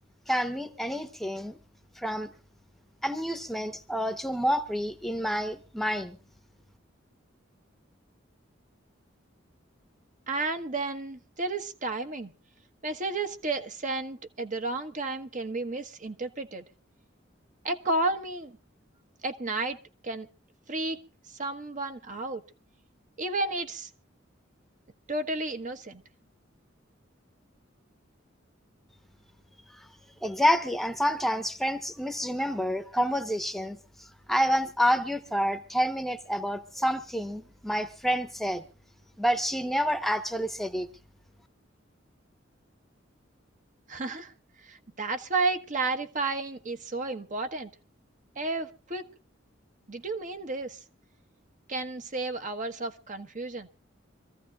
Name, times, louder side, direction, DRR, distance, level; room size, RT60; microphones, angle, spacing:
voice 1, 0.3-1.6 2.0-2.3 3.0-6.2 30.2-33.8 34.3-38.6 39.2-40.9, equal, ahead, 1.0 m, -28 dB
voice 2, 10.3-12.3 12.8-16.6 17.6-18.6 19.2-19.8 20.0-20.3 20.7-21.0 21.3-22.4 23.2-23.9 25.1-26.0 43.9-44.3 44.6-47.7 48.4-49.1 49.9-50.8 51.7-53.7, right 2 dB, 40° right, 1.3 m, -32 dB
26.0 x 14.5 x 2.4 m
head